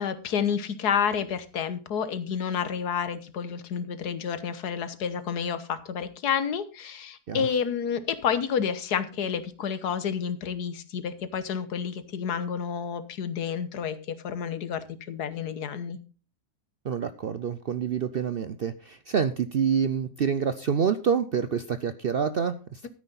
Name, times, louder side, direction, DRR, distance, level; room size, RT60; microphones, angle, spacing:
voice 1, 0.0-16.0, left 7 dB, 85° left, 13 dB, 1.6 m, -30 dB
voice 2, 16.8-22.9, right 7 dB, 60° right, 12 dB, 0.6 m, -27 dB
13.0 x 9.7 x 4.0 m, 0.34 s
omnidirectional pair, 1.7 m